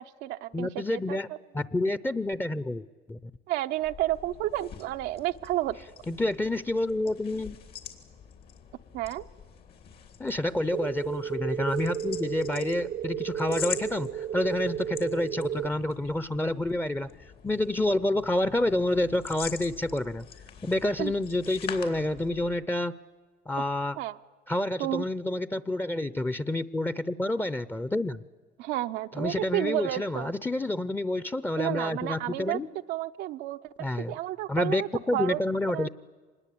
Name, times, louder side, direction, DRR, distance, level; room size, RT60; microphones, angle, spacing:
voice 1, 0.0-1.4 3.5-5.8 8.9-9.3 21.0-21.1 23.6-23.7 24.0-24.2 24.8-25.0 28.6-30.3 31.6-32.6 32.9-33.7 34.1-34.9 35.1-35.4 35.7-35.9, right 15 dB, 90° right, 7 dB, 0.8 m, -31 dB
voice 2, 0.5-1.3 1.5-3.3 6.1-7.6 10.2-17.1 17.4-20.3 20.6-22.9 23.5-24.0 24.5-28.2 29.1-32.7 33.8-34.1 34.5-35.9, left 1 dB, 10° left, 15 dB, 0.7 m, -28 dB
sound 1, 3.7-22.6, left 8 dB, 65° left, 3.3 m, -45 dB
sound 2, 10.7-15.7, right 9 dB, 55° right, 0.7 m, -33 dB
25.5 x 20.5 x 8.5 m, 1.4 s
cardioid pair, 110°, 17 cm